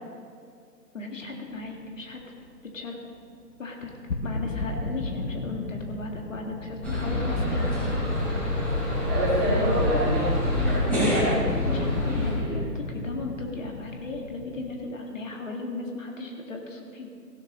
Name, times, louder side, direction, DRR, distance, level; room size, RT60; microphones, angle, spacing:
voice 1, 0.9-2.4 2.7-3.0 3.6-3.9 4.2-7.6 11.7-17.1, left 3 dB, 50° left, 1 dB, 2.0 m, -36 dB
sound 1, 1.6-2.5 4.1-9.2 9.4-9.7 11.2-14.9, left 3 dB, 85° left, 1.0 m, -35 dB
sound 2, 6.8-12.3, left 1 dB, 5° left, 3.3 m, -26 dB
voice 2, 9.1-11.8 12.0-12.2 12.5-12.6, right 1 dB, 15° right, -7 dB, 2.6 m, -28 dB
16.5 x 11.5 x 3.0 m, 2.2 s
figure-of-eight pair, 145°, 49 cm